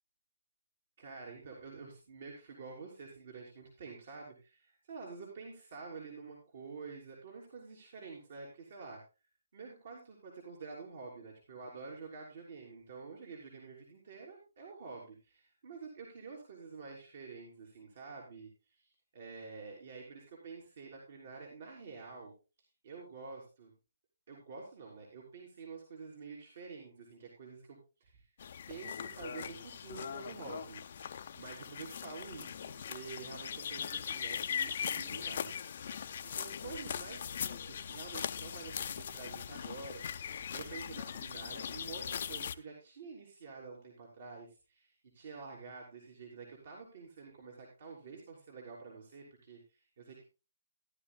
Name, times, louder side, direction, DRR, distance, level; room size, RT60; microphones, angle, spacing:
voice 1, 1.0-9.0 9.5-22.3 22.8-23.7 24.3-28.2 28.7-40.2 40.5-50.2, right 4 dB, 55° right, -2 dB, 3.3 m, -49 dB
sound 1, 28.4-42.5, left 8 dB, 50° left, 0.7 m, -40 dB
15.5 x 11.0 x 2.3 m, 0.31 s
hypercardioid pair, 155°, 0 cm